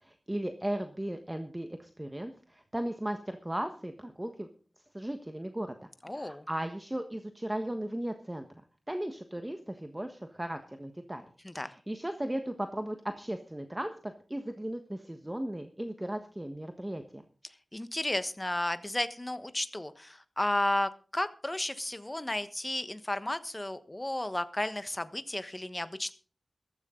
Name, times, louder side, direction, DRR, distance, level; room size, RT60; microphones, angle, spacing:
voice 1, 0.0-4.5 4.9-8.5 8.9-11.3 11.5-17.2, right 1 dB, 15° right, 7 dB, 1.3 m, -36 dB
voice 2, 6.0-6.4 11.4-11.7 17.7-26.1, left 1 dB, 20° left, 12 dB, 1.2 m, -33 dB
14.5 x 14.0 x 3.8 m, 0.39 s
wide cardioid pair, 90°, 0 cm